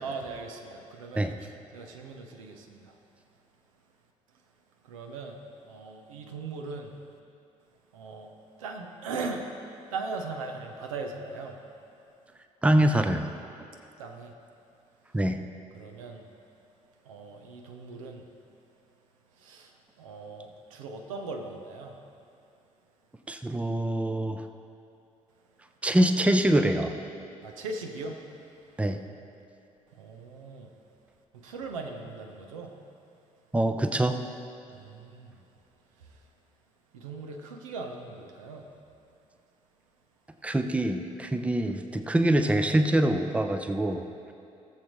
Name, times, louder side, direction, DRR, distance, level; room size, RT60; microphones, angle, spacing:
voice 1, 0.0-3.0 4.8-6.9 7.9-8.3 8.6-9.5 9.9-11.6 14.0-14.3 15.7-16.3 17.0-18.3 19.4-22.0 27.4-28.8 29.9-30.7 31.3-32.8 34.7-35.4 36.0-36.3 36.9-38.7, right 3 dB, 75° right, 3 dB, 0.7 m, -39 dB
voice 2, 12.6-13.3 15.1-15.4 23.3-24.4 25.8-26.9 28.8-29.0 33.5-34.2 40.4-44.0, right 1 dB, 5° right, 7 dB, 0.6 m, -24 dB
17.5 x 7.3 x 3.1 m, 2.6 s
figure-of-eight pair, 45°, 17 cm